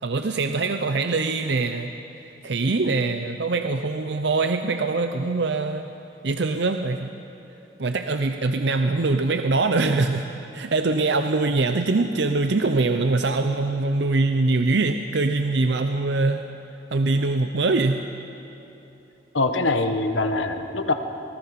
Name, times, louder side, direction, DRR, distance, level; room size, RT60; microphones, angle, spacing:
voice 1, 0.0-1.9 2.4-5.9 6.2-7.1 7.8-10.2 10.5-16.5 16.9-18.0, right 3 dB, 60° right, 7 dB, 0.6 m, -23 dB
voice 2, 19.3-20.9, left 2 dB, 75° left, 7 dB, 1.2 m, -23 dB
25.0 x 18.0 x 5.9 m, 3.0 s
head